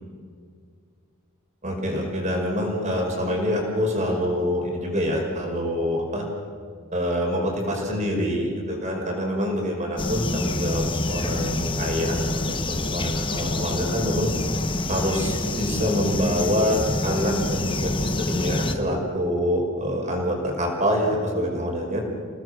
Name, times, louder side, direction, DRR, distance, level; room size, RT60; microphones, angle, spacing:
voice 1, 1.6-6.3 6.9-12.4 12.7-14.3 14.9-22.0, equal, 35° right, 1 dB, 5.3 m, -26 dB
sound 1, 10.0-18.7, left 2 dB, 25° left, 1.1 m, -27 dB
29.5 x 18.5 x 6.3 m, 2.2 s
head